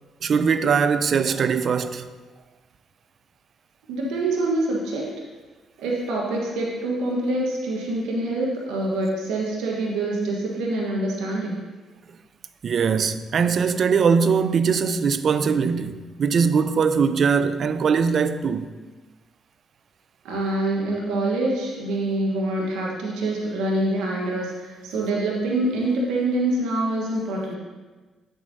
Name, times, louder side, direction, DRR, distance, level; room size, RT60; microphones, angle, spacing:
voice 1, 0.2-2.0 12.6-18.7, right 6 dB, 55° right, 0.4 m, -21 dB
voice 2, 3.9-5.0 5.8-11.6 20.2-27.6, right 2 dB, 75° right, 1.2 m, -25 dB
8.0 x 7.3 x 2.7 m
hypercardioid pair, 50°, 0 cm